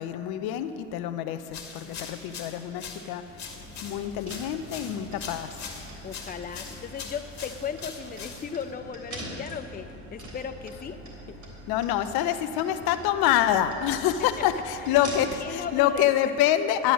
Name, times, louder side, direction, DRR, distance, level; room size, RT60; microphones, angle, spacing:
voice 1, 0.0-3.2 3.8-5.6 11.7-16.9, left 11 dB, 65° left, 10 dB, 0.8 m, -26 dB
sound 1, 1.5-8.7, left 5 dB, 45° left, 2.1 m, -42 dB
sound 2, 3.3-15.6, equal, 45° right, 3.3 m, -43 dB
voice 2, 6.0-11.0 11.3-11.4 14.4-14.5 14.8-15.0 15.4-16.1, left 7 dB, 20° left, 8 dB, 0.7 m, -36 dB
11.5 x 9.8 x 6.3 m, 3.0 s
hypercardioid pair, 75°, 40 cm